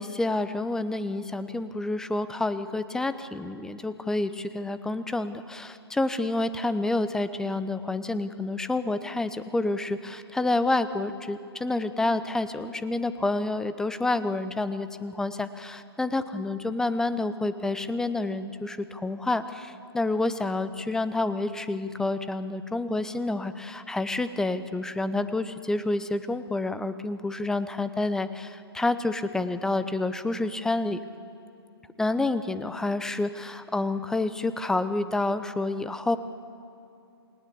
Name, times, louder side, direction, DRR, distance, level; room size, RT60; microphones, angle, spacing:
voice 1, 0.0-31.0 32.0-36.2, left 2 dB, 5° left, 13 dB, 0.7 m, -28 dB
28.5 x 18.5 x 8.4 m, 2.7 s
figure-of-eight pair, 125°, 13 cm